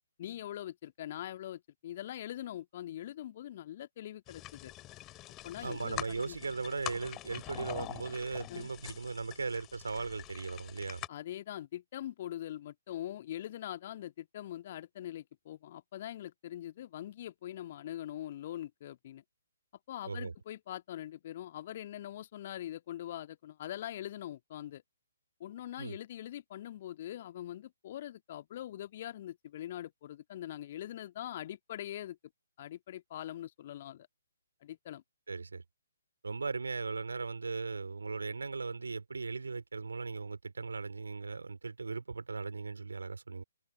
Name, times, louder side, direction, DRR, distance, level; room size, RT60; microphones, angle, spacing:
voice 1, 0.2-4.7 5.4-6.4 8.5-8.7 11.1-19.2 19.9-24.8 25.4-32.2 32.6-34.1 34.6-35.0, left 12 dB, 40° left, 1.9 m, -43 dB
sound 1, 4.3-11.1, left 17 dB, 20° left, 4.7 m, -45 dB
voice 2, 5.6-11.0 20.0-20.3 25.8-26.0 35.3-35.6 36.2-43.4, right 4 dB, 65° right, 3.2 m, -38 dB
figure-of-eight pair, 135°, 0 cm